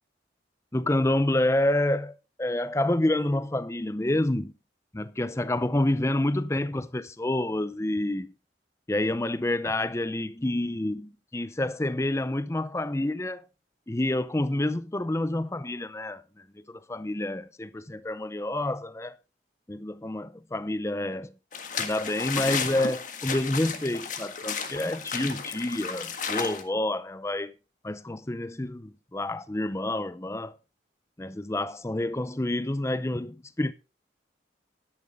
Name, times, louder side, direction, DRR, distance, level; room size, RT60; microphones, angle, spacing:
voice 1, 0.7-4.5 4.9-8.3 8.9-13.4 13.9-19.2 19.7-21.3 21.8-27.5 27.8-30.5 31.2-33.7, left 1 dB, 15° left, 0.6 m, -28 dB
sound 1, 21.5-26.6, left 6 dB, 45° left, 1.6 m, -33 dB
12.0 x 11.0 x 3.6 m
head